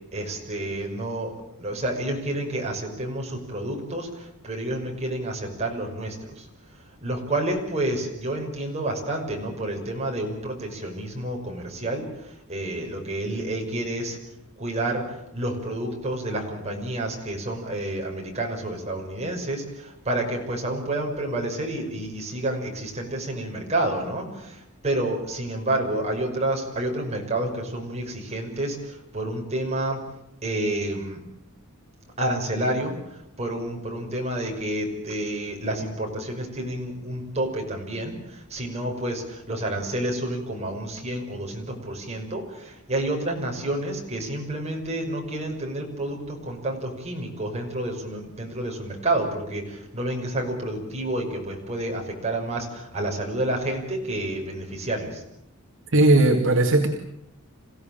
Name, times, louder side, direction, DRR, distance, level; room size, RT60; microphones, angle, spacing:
voice 1, 0.1-1.3 1.6-6.5 7.0-14.2 14.6-30.0 30.4-31.2 32.2-55.2, right 1 dB, 30° right, 1 dB, 5.9 m, -29 dB
voice 2, 55.9-56.9, right 2 dB, 60° right, 2 dB, 2.2 m, -17 dB
27.5 x 17.0 x 9.0 m, 0.81 s
head